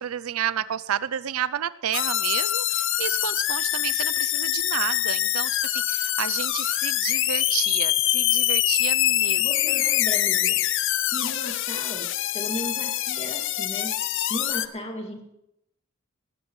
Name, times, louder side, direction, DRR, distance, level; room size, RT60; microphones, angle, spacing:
voice 1, 0.0-9.5, right 10 dB, 90° right, 17 dB, 0.4 m, -31 dB
sound 1, 1.9-14.7, left 14 dB, 60° left, 0.5 m, -24 dB
voice 2, 9.4-10.6 11.0-12.1 12.3-15.2, equal, 30° left, 2 dB, 2.2 m, -35 dB
19.5 x 13.0 x 3.2 m, 0.85 s
head